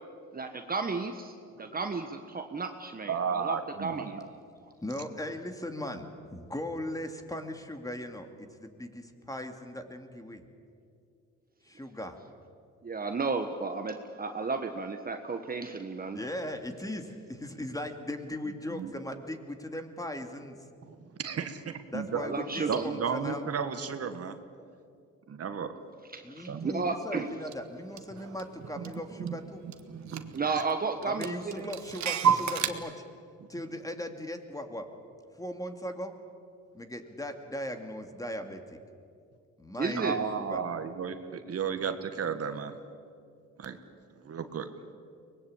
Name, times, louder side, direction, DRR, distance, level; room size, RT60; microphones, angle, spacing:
voice 1, 0.3-1.3 1.6-4.2 12.8-16.2 22.1-23.0 26.1-27.3 30.3-31.4 39.8-40.2, right 4 dB, 30° right, 6 dB, 1.4 m, -33 dB
voice 2, 3.1-4.3 18.7-18.9 20.8-22.2 22.7-24.4 25.3-25.7 26.5-26.9 28.8-28.9 29.2-29.4 29.9-30.6 32.2-32.3 33.4-33.5 39.9-42.8 43.6-43.8 44.2-44.7, right 6 dB, 50° right, 8 dB, 1.7 m, -34 dB
voice 3, 4.8-6.1 6.3-10.4 11.6-12.2 16.1-20.6 21.9-23.4 26.2-29.6 31.0-33.0 33.5-34.9 35.4-36.1 36.7-38.8 39.6-40.6, left 1 dB, 10° left, 6 dB, 2.4 m, -38 dB
Clock, 27.5-27.6 28.0-29.4 29.7-29.8 30.1-30.7 31.0-32.7, right 7 dB, 65° right, 1.6 m, -30 dB
24.0 x 20.0 x 8.7 m, 2.4 s
cardioid pair, 90°, 30 cm